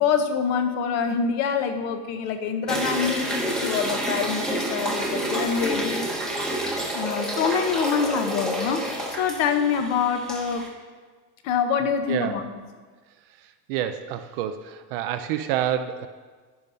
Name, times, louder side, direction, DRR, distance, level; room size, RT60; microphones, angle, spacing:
voice 1, 0.0-3.3 3.6-6.1 6.9-10.7 11.4-12.4, left 6 dB, 35° left, 7 dB, 0.9 m, -25 dB
sound 1, 2.7-10.7, right 1 dB, ahead, 1.1 m, -29 dB
voice 2, 13.4-16.1, right 10 dB, 40° right, 8 dB, 0.5 m, -28 dB
11.0 x 10.5 x 5.6 m, 1.4 s
supercardioid pair, 180°, 46 cm